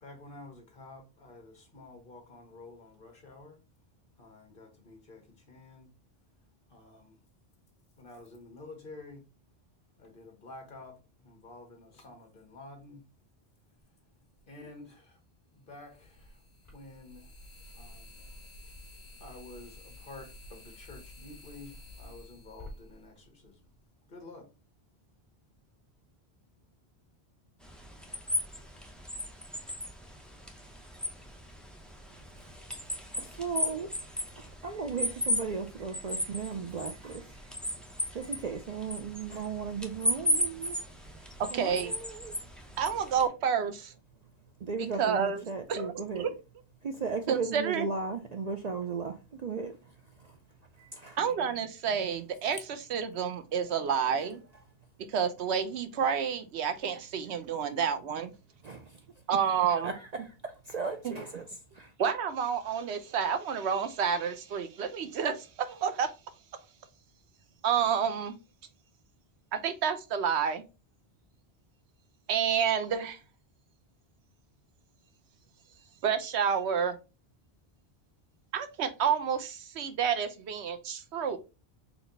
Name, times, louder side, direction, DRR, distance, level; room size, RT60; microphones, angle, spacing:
voice 1, 0.0-3.6 4.2-5.9 6.7-7.2 8.0-9.3 10.0-13.1 14.5-15.2 15.5-16.4 16.7-17.4 17.7-18.2 19.2-23.7 24.1-24.5, left 2 dB, 55° left, 1.5 m, -50 dB
sound 1, 14.4-14.5 15.8-23.7, left 1 dB, 30° left, 2.0 m, -50 dB
sound 2, 27.6-43.3, left 1 dB, ahead, 0.7 m, -36 dB
voice 2, 33.1-33.9 34.4-37.4 38.1-40.8 41.5-42.3 44.6-46.3 46.8-49.8 50.2-50.4 50.8-51.2 58.6-59.0 59.6-61.5 61.7-61.9, right 5 dB, 50° right, 0.5 m, -36 dB
voice 3, 41.4-41.9 42.8-43.9 45.0-46.3 47.3-47.9 51.2-54.4 55.1-58.3 59.3-59.9 61.0-61.1 62.0-66.1 67.6-68.4 69.5-70.6 72.3-73.2 76.0-77.0 78.5-81.4, right 7 dB, 85° right, 1.0 m, -29 dB
4.3 x 2.8 x 3.9 m
omnidirectional pair, 1.1 m